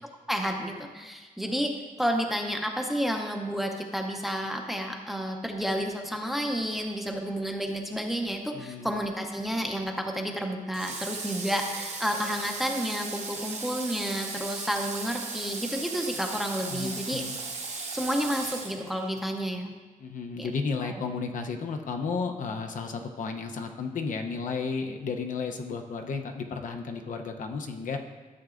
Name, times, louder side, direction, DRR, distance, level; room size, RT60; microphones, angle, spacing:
voice 1, 0.3-17.2 17.9-19.7 20.4-20.5 20.8-21.0, equal, ahead, 3 dB, 0.6 m, -31 dB
voice 2, 8.5-8.9 16.7-17.4 20.0-28.0, left 5 dB, 70° left, 4 dB, 0.7 m, -33 dB
Water / Water tap faucet, 10.7-19.2, right 4 dB, 55° right, 1.1 m, -37 dB
12.5 x 7.8 x 2.5 m, 1.3 s
wide cardioid pair, 180°, 14 cm